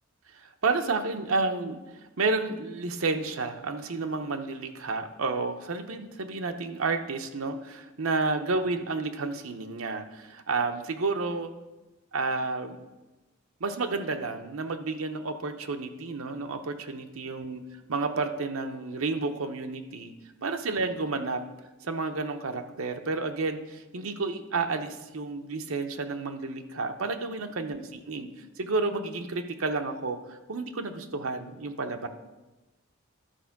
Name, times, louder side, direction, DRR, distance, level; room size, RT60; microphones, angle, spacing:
voice 1, 0.3-1.8 2.2-11.5 12.1-12.8 13.6-17.6 17.9-20.1 20.4-21.4 21.8-32.1, right 3 dB, 80° right, 6 dB, 0.8 m, -31 dB
12.0 x 4.4 x 5.9 m, 1.1 s
head